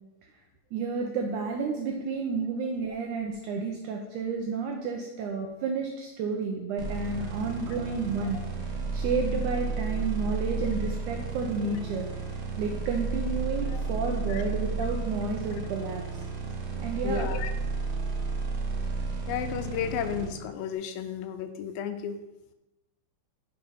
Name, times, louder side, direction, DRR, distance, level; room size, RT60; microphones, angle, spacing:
voice 1, 0.7-8.4 8.9-12.1 12.6-16.2 16.8-17.3, right 4 dB, 90° right, 2 dB, 1.7 m, -31 dB
sound 1, 6.8-20.3, right 4 dB, 65° right, 1.7 m, -32 dB
voice 2, 7.9-8.5 13.7-13.8 14.3-14.4 17.0-17.5 19.3-22.2, left 8 dB, 80° left, 9 dB, 2.2 m, -33 dB
6.7 x 4.8 x 5.5 m, 0.99 s
omnidirectional pair, 4.3 m